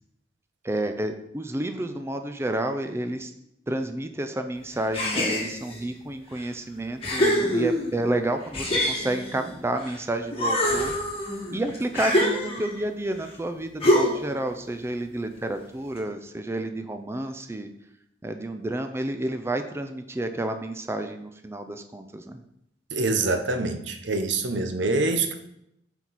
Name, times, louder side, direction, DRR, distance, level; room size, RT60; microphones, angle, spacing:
voice 1, 0.6-3.3 3.7-10.9 11.5-17.7 18.2-22.4, right 1 dB, 15° right, 7 dB, 0.4 m, -30 dB
sound 1, 4.9-5.8 6.4-6.5 7.0-8.0 8.5-10.0 10.3-12.8 13.8-14.4, equal, 35° left, 1.7 m, -25 dB
voice 2, 22.9-25.3, right 3 dB, 85° right, 8 dB, 0.7 m, -25 dB
8.4 x 4.5 x 4.1 m, 0.80 s
head